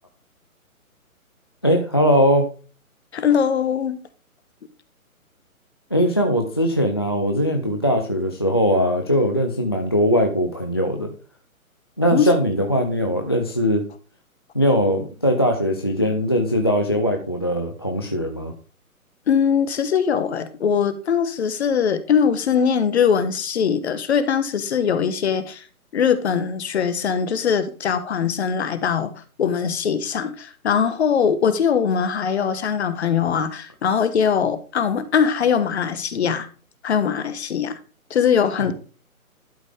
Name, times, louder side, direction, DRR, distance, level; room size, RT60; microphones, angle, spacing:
voice 1, 1.6-2.5 5.9-11.1 12.0-13.9 14.5-18.5 38.7-38.8, equal, 20° left, 0.4 m, -20 dB
voice 2, 3.1-4.0 12.1-12.3 19.3-25.6 25.9-36.5 36.8-37.8 38.1-38.7, left 7 dB, 50° left, 1.2 m, -21 dB
12.0 x 5.4 x 3.4 m
hypercardioid pair, 145°, 43 cm